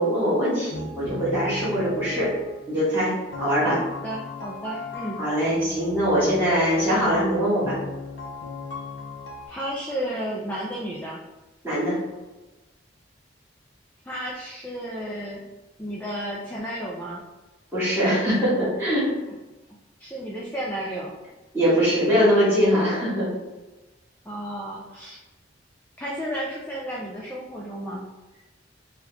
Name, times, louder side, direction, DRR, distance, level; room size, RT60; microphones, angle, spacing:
voice 1, 0.0-2.3 2.7-3.8 5.2-7.8 11.6-12.0 17.7-19.1 21.5-23.3, equal, 10° right, -11 dB, 1.5 m, -22 dB
sound 1, 0.7-2.9 3.3-9.5, left 2 dB, 85° left, 0.7 m, -36 dB
voice 2, 3.6-5.2 9.5-11.2 14.0-15.4 15.8-17.2 20.0-21.1 24.3-25.2 26.0-28.0, right 1 dB, 10° left, -4 dB, 0.4 m, -32 dB
3.4 x 2.3 x 3.1 m, 1.1 s
head